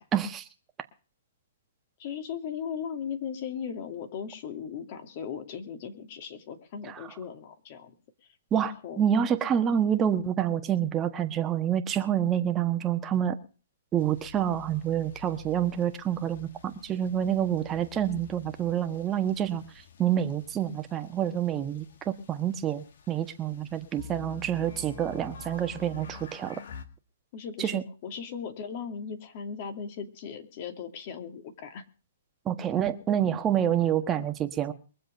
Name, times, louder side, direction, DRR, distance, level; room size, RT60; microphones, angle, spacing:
voice 1, 0.1-0.5 6.9-7.1 8.5-13.4 13.9-19.6 20.0-26.6 27.6-27.8 32.4-34.7, right 9 dB, 20° right, 8 dB, 1.3 m, -27 dB
voice 2, 2.0-8.0 8.5-9.0 27.3-31.8, left 7 dB, 45° left, 7 dB, 2.5 m, -38 dB
sound 1, 14.0-26.9, left 6 dB, 65° left, 1.9 m, -49 dB
23.0 x 7.6 x 5.3 m, 0.37 s
hypercardioid pair, 140°, 0 cm